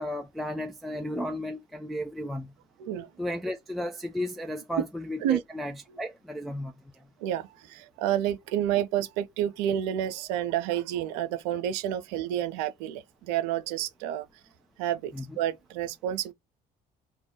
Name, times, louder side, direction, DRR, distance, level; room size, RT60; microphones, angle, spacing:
voice 1, 0.0-2.5 3.2-6.7 15.1-15.4, left 1 dB, ahead, 0.4 m, -34 dB
voice 2, 2.8-3.1 5.2-5.4 7.2-14.3 14.8-16.3, right 11 dB, 80° right, 0.5 m, -29 dB
2.3 x 2.0 x 3.6 m
hypercardioid pair, 60°, 21 cm